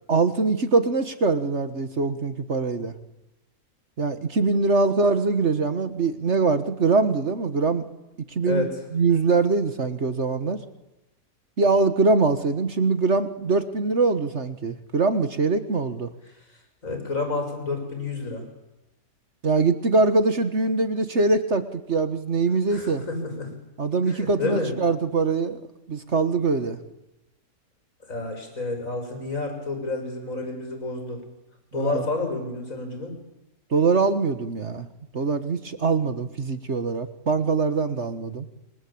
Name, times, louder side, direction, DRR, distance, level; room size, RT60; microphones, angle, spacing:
voice 1, 0.1-2.9 4.0-7.8 8.3-8.7 8.9-10.6 11.6-16.1 19.4-23.0 23.8-25.6 25.9-26.8 31.7-32.0 33.7-34.9 35.1-38.5, right 3 dB, 50° right, 10 dB, 1.8 m, -23 dB
voice 2, 8.4-8.7 16.8-18.5 22.7-23.5 24.1-24.8 28.1-31.2 31.7-33.1, left 3 dB, 60° left, 5 dB, 6.7 m, -30 dB
28.5 x 23.0 x 8.7 m, 0.98 s
omnidirectional pair, 1.6 m